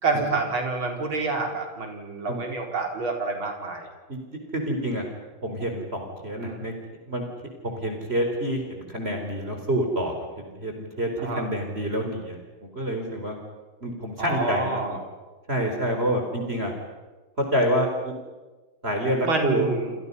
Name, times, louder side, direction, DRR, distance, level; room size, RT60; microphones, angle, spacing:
voice 1, 0.0-3.9 6.4-6.6 11.2-11.5 14.2-15.0 19.2-19.9, right 3 dB, 70° right, 2 dB, 5.2 m, -28 dB
voice 2, 4.5-5.0 5.4-6.7 7.1-7.2 7.6-10.2 10.5-12.4 12.6-13.4 13.8-15.0 15.5-16.7 17.4-18.1 18.8-19.7, equal, 30° right, 3 dB, 4.3 m, -27 dB
30.0 x 28.0 x 5.5 m, 1.3 s
omnidirectional pair, 2.3 m